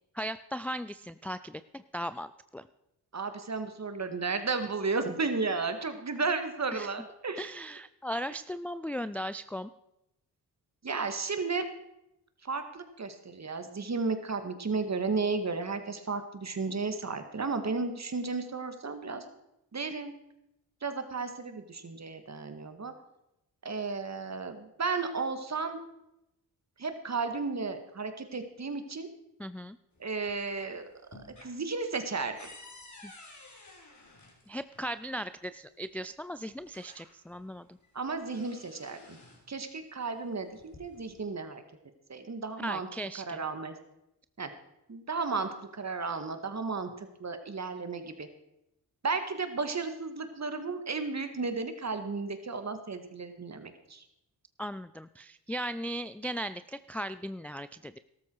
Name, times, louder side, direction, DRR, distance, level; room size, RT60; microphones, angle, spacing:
voice 1, 0.1-2.7 6.7-6.9 7.4-9.7 29.4-29.8 33.0-33.1 34.5-37.7 42.6-43.4 54.6-58.0, equal, 5° left, 13 dB, 0.4 m, -37 dB
voice 2, 3.1-7.5 10.8-11.6 12.4-19.3 19.7-20.1 20.8-22.9 23.6-25.8 26.8-29.1 30.0-30.9 31.4-32.4 37.9-39.2 39.5-41.6 42.1-42.9 43.3-43.7 44.4-44.5 44.9-48.3 49.0-54.0, right 4 dB, 40° right, 8 dB, 1.9 m, -33 dB
sound 1, 29.9-30.6 30.9-34.9 36.0-36.1 36.5-37.4 37.8-39.5 40.4-41.2, left 2 dB, 45° left, 3.6 m, -53 dB
13.0 x 13.0 x 4.7 m, 0.86 s
supercardioid pair, 55°, 41 cm